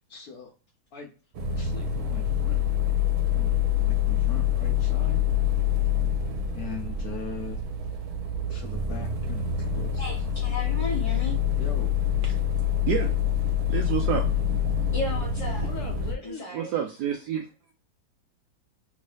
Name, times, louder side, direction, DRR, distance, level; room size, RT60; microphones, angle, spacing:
voice 1, 0.1-0.5 0.9-1.1 1.6-2.6 3.3-5.2 6.5-7.6 8.5-10.1 11.6-12.0 15.6-16.6, left 5 dB, 65° left, 1 dB, 1.0 m, -40 dB
sound 1, 1.3-16.1, left 8 dB, 90° right, 1.5 m, -26 dB
voice 2, 10.0-11.4 14.9-15.7 16.2-16.8, left 1 dB, 35° left, -6 dB, 0.5 m, -34 dB
voice 3, 13.7-14.2 16.5-17.5, right 9 dB, 75° right, 3 dB, 0.9 m, -28 dB
3.6 x 2.7 x 3.2 m, 0.35 s
omnidirectional pair, 2.2 m